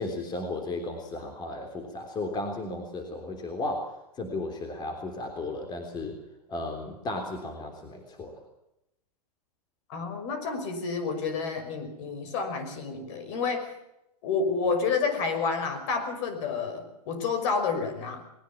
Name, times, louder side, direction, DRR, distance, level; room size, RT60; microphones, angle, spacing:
voice 1, 0.0-6.2 6.5-8.4, left 2 dB, 20° left, 4 dB, 3.5 m, -34 dB
voice 2, 9.9-13.7 14.2-18.2, left 5 dB, 50° left, 8 dB, 5.7 m, -29 dB
21.0 x 19.0 x 7.3 m, 0.88 s
hypercardioid pair, 130°, 20 cm